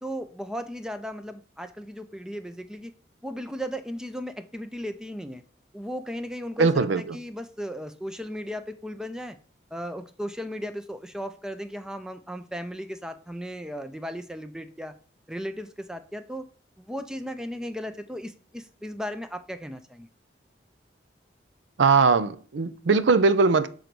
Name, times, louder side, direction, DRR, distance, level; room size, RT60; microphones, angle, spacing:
voice 1, 0.0-2.9 3.2-5.4 5.7-9.4 9.7-14.9 15.3-16.5 16.8-20.1, equal, 5° right, 9 dB, 0.4 m, -36 dB
voice 2, 6.6-7.2 21.8-23.7, right 4 dB, 85° right, 13 dB, 0.5 m, -20 dB
6.8 x 3.9 x 4.5 m, 0.41 s
head